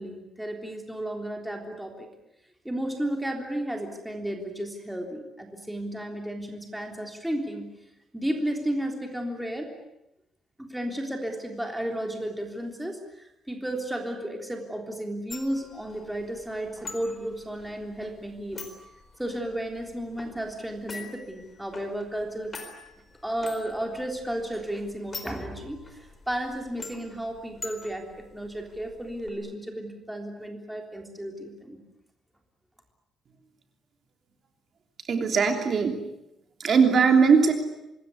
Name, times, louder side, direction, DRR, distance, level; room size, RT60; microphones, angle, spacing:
voice 1, 0.0-2.1 2.7-7.7 8.1-9.7 10.6-18.7 19.2-22.7 23.2-31.8, right 1 dB, 5° right, 2 dB, 3.5 m, -33 dB
sound 1, 15.3-29.3, left 3 dB, 25° left, 4.3 m, -46 dB
voice 2, 35.1-36.0 36.6-37.5, right 5 dB, 40° right, 5 dB, 3.2 m, -20 dB
26.0 x 21.5 x 9.7 m, 0.87 s
cardioid pair, 170°, 0 cm